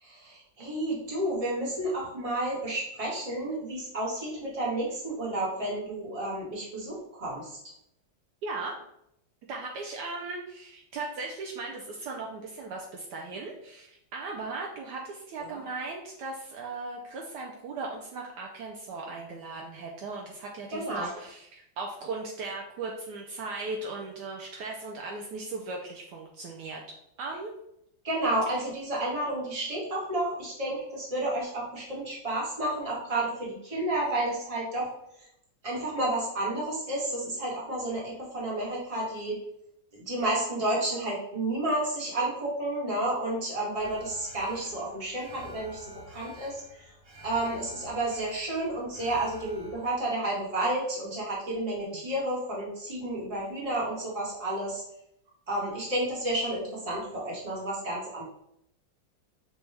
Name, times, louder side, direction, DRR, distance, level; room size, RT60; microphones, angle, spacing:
voice 1, 0.0-7.6 15.4-15.6 20.7-21.1 28.0-34.9 35.6-39.4 39.9-46.8 47.2-54.8 55.5-58.2, right 1 dB, 20° right, -5 dB, 1.1 m, -31 dB
voice 2, 8.4-8.8 9.5-26.8 27.2-27.5 28.5-28.6 51.9-52.0, right 3 dB, 75° right, 0 dB, 1.1 m, -37 dB
Alarm, 43.7-49.9, equal, 50° right, 0.9 m, -49 dB
6.0 x 2.3 x 3.2 m, 0.77 s
omnidirectional pair, 2.0 m